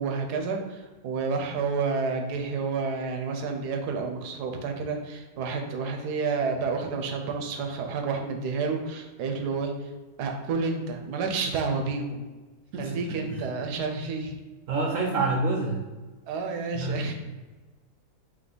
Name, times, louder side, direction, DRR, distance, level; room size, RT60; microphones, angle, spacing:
voice 1, 0.0-9.9 10.2-12.3 12.7-14.3 16.3-17.1, right 4 dB, 85° right, 4 dB, 1.2 m, -30 dB
voice 2, 14.7-15.8 16.7-17.0, right 3 dB, 65° right, 1 dB, 0.9 m, -27 dB
3.8 x 3.0 x 3.8 m, 1.3 s
omnidirectional pair, 1.7 m